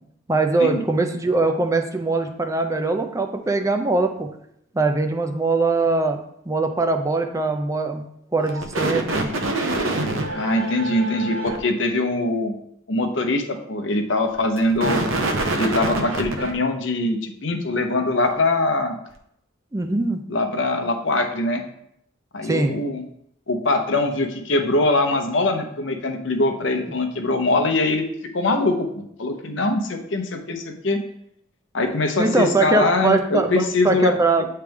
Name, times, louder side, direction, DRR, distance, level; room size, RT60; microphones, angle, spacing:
voice 1, 0.3-4.3 4.7-6.2 6.5-8.0 8.3-9.3 19.7-20.2 22.4-22.8 32.2-34.5, right 3 dB, 15° right, 5 dB, 0.5 m, -21 dB
sound 1, 8.4-11.6 14.4-16.5, right 2 dB, 80° right, 0.8 m, -25 dB
voice 2, 10.3-12.6 12.9-15.0 15.6-18.9 20.3-21.6 22.3-23.0 23.5-28.0 28.3-31.0 31.7-34.2, left 2 dB, 65° left, 5 dB, 0.8 m, -22 dB
8.9 x 3.3 x 3.5 m, 0.73 s
head